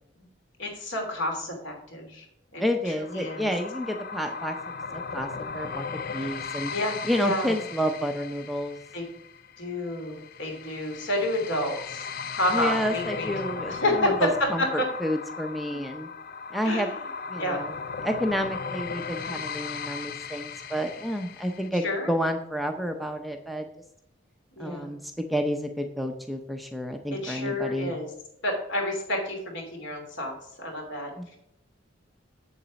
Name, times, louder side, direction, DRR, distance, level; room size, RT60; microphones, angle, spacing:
voice 1, 0.6-2.3 2.5-3.5 6.7-7.5 8.9-9.1 9.6-12.1 12.3-13.3 13.7-14.9 16.6-16.9 17.3-17.6 19.2-19.4 21.8-22.1 24.6-24.9 27.1-28.1 28.4-31.1, left 1 dB, 65° left, 2 dB, 2.9 m, -29 dB
voice 2, 2.6-4.6 4.9-5.8 6.1-6.7 7.0-8.8 12.5-16.1 16.5-16.9 17.3-17.7 18.0-23.7 24.6-27.9 31.2-31.4, equal, ahead, 4 dB, 0.6 m, -30 dB
sound 1, 3.0-21.7, left 5 dB, 45° left, 0.5 m, -37 dB
7.9 x 7.2 x 5.1 m, 0.77 s
head